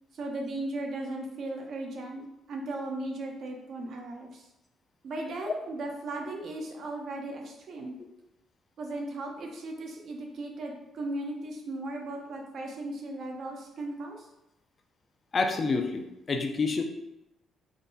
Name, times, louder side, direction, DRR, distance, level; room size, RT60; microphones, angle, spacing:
voice 1, 0.1-4.4 5.0-8.0 8.8-14.2, right 2 dB, 65° right, 1 dB, 0.8 m, -37 dB
voice 2, 15.3-16.8, left 4 dB, 40° left, 5 dB, 0.5 m, -28 dB
3.7 x 2.2 x 3.9 m, 0.91 s
cardioid pair, 90°, 0 cm